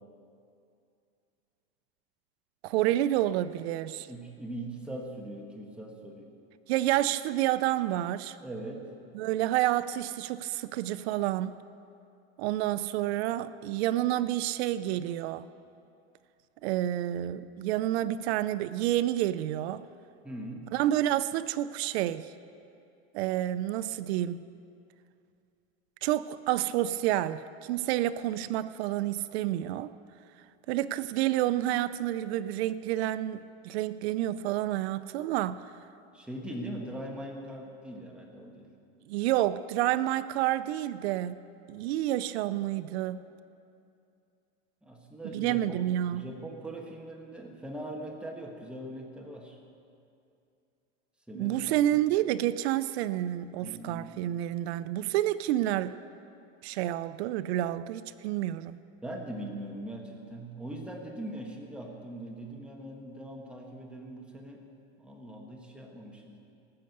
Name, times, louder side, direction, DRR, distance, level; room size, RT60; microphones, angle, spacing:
voice 1, 2.6-4.1 6.7-8.4 9.1-11.6 12.4-15.5 16.6-19.8 20.7-22.3 23.1-24.5 26.0-29.9 30.7-35.6 39.1-41.4 41.7-43.2 45.3-46.3 51.3-55.9 56.6-58.8, right 13 dB, 80° right, 14 dB, 0.6 m, -29 dB
voice 2, 4.1-6.3 8.4-8.9 20.2-20.7 36.1-38.7 44.8-49.6 51.3-52.0 53.6-54.2 59.0-64.6 65.0-66.4, right 1 dB, 5° right, 0 dB, 1.4 m, -41 dB
19.0 x 6.6 x 7.9 m, 2.5 s
supercardioid pair, 155°, 32 cm